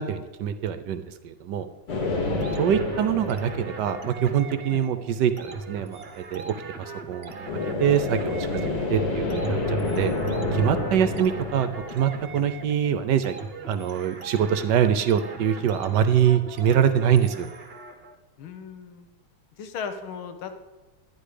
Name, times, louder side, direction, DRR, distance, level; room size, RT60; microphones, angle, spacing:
voice 1, 0.0-1.7 2.6-7.5 7.8-10.1 10.5-11.7 11.9-13.4 13.7-17.5, right 9 dB, 70° right, 11 dB, 1.1 m, -24 dB
sound 1, 1.9-4.7 7.5-12.9, left 2 dB, 60° left, 2.3 m, -29 dB
voice 2, 2.3-2.7 4.7-4.8 10.8-11.3 18.4-19.1 19.6-20.6, left 6 dB, 85° left, 7 dB, 1.8 m, -38 dB
sound 2, 2.4-18.1, right 4 dB, 40° right, 0.9 m, -40 dB
12.0 x 10.0 x 5.0 m, 1.1 s
omnidirectional pair, 2.2 m